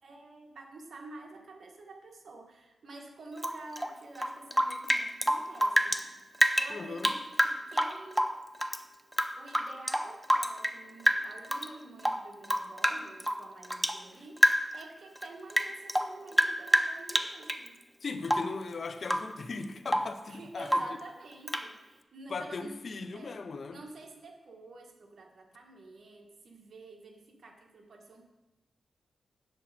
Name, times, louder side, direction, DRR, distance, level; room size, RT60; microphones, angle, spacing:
voice 1, 0.0-6.1 6.5-8.3 9.4-17.8 20.2-22.8 23.1-23.4 23.7-28.2, right 2 dB, 65° right, 3 dB, 1.5 m, -49 dB
Rain / Drip, 3.4-6.0 6.3-8.8 9.1-10.8 11.1-11.7 12.0-14.0 14.4-14.8 15.2-17.7 18.2-18.6 19.0-19.4 19.6-20.2 20.7-21.0 21.5-21.7, equal, ahead, 0.6 m, -28 dB
voice 2, 6.7-7.1 18.0-20.8 22.3-23.8, left 4 dB, 60° left, 9 dB, 0.7 m, -38 dB
8.8 x 6.9 x 4.2 m, 1.0 s
cardioid pair, 60°, 0 cm